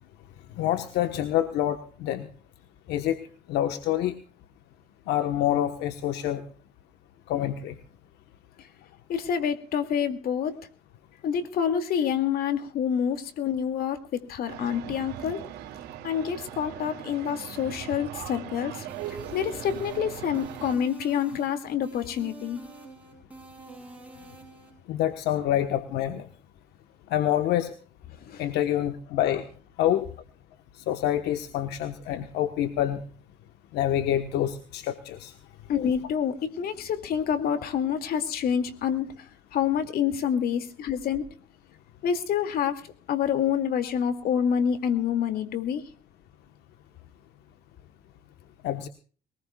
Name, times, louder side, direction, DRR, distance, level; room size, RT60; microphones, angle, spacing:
voice 1, 0.6-2.3 2.9-3.2 3.5-4.1 5.1-6.4 7.3-7.7 24.9-26.3 27.1-27.7 28.4-29.5 29.8-30.1 30.9-33.0 33.7-35.3 48.6-48.9, left 11 dB, 85° left, 8 dB, 1.3 m, -26 dB
voice 2, 9.1-10.6 11.2-15.4 16.0-22.6 28.2-28.4 35.7-39.1 39.5-41.3 42.0-42.8 43.1-45.8, left 8 dB, 65° left, 8 dB, 2.4 m, -27 dB
sound 1, 14.5-20.8, right 10 dB, 90° right, 2.4 m, -39 dB
sound 2, 18.9-24.7, right 3 dB, 10° right, 7.8 m, -47 dB
22.5 x 19.5 x 2.4 m, 0.40 s
cardioid pair, 110°, 17 cm